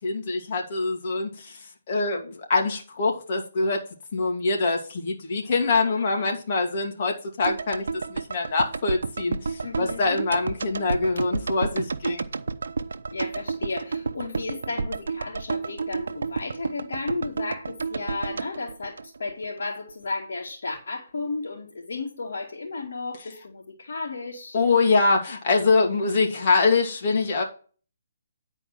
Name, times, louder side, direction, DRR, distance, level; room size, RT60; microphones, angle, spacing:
voice 1, 0.0-3.8 4.1-7.8 8.1-12.2 24.5-27.4, left 3 dB, 45° left, 1 dB, 2.5 m, -24 dB
voice 2, 5.4-6.4 9.6-10.3 13.1-24.6, left 3 dB, 70° left, -4 dB, 2.7 m, -34 dB
sound 1, 7.4-19.6 19.9-20.0, right 4 dB, 75° right, 0.7 m, -31 dB
10.5 x 4.5 x 6.0 m, 0.39 s
hypercardioid pair, 155°, 0 cm